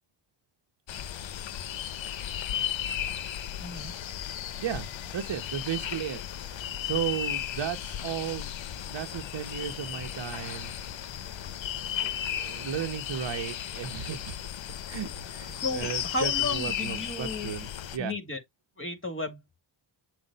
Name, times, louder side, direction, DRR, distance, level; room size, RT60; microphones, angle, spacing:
sound 1, 0.9-18.0, left 10 dB, 70° left, 0.8 m, -35 dB
voice 1, 3.6-3.9 15.6-17.5 18.0-18.4 18.8-19.6, left 2 dB, 25° left, 2.6 m, -34 dB
voice 2, 4.6-6.2 6.5-8.5 8.9-10.8 12.0-14.4 14.9-18.1, right 9 dB, 65° right, 1.1 m, -35 dB
7.6 x 2.6 x 5.6 m
cardioid pair, 55°, 47 cm